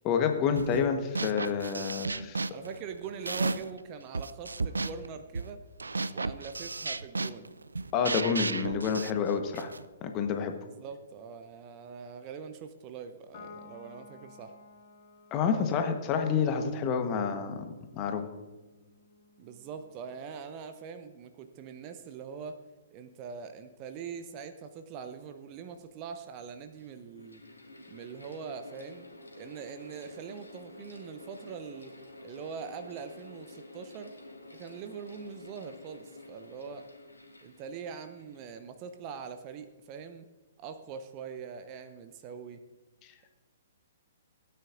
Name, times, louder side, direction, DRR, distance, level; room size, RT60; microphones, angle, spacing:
voice 1, 0.0-2.4 7.9-9.7 10.0-10.5 15.3-17.6 17.9-18.3, left 6 dB, 25° left, 6 dB, 1.1 m, -28 dB
sound 1, 0.6-0.9 1.2-3.8 4.1-9.9, right 3 dB, 75° right, 0.4 m, -34 dB
voice 2, 2.5-5.6 6.1-7.5 8.7-8.8 10.6-14.5 15.5-16.2 19.4-22.6 22.9-27.4 27.9-29.1 29.4-32.0 32.2-34.1 34.5-36.9 37.4-40.3 40.6-42.6, right 6 dB, 30° right, 9 dB, 0.7 m, -43 dB
Piano, 13.3-20.0, left 4 dB, 45° left, 2.7 m, -55 dB
Mechanical fan, 26.4-39.1, left 2 dB, 80° left, 1.9 m, -50 dB
17.0 x 9.3 x 2.5 m, 1.2 s
figure-of-eight pair, 120°, 0 cm